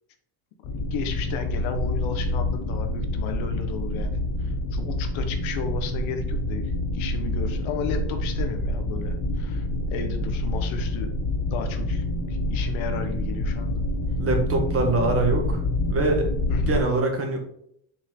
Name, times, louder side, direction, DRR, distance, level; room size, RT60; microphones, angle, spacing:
sound 1, 0.6-16.8, left 1 dB, 60° left, 1.6 m, -27 dB
voice 1, 0.9-11.1 11.5-13.8 16.5-16.8, left 6 dB, 85° left, 6 dB, 1.5 m, -34 dB
voice 2, 14.2-15.6 15.9-16.3 16.7-17.4, right 3 dB, 30° right, 3 dB, 1.6 m, -23 dB
6.9 x 5.4 x 3.8 m, 0.69 s
cardioid pair, 165°, 46 cm